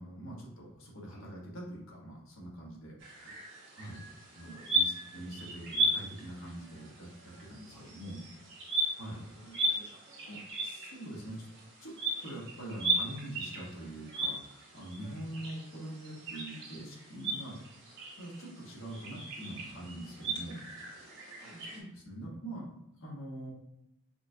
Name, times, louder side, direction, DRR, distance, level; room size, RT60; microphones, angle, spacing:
voice 1, 0.0-2.9 3.7-4.0 4.3-8.2 9.0-9.2 10.6-11.5 11.8-11.9 12.2-17.6 18.2-20.6 21.0-21.2 21.5-22.7 23.0-23.5, right 1 dB, 70° left, -3 dB, 1.3 m, -44 dB
sound 1, 3.0-21.8, right 2 dB, 55° right, 1.3 m, -37 dB
voice 2, 4.4-4.7 7.7-8.0 9.0-10.5 15.3-15.4 21.4-21.7, equal, 85° left, -3 dB, 1.0 m, -54 dB
5.8 x 2.3 x 2.8 m, 0.83 s
head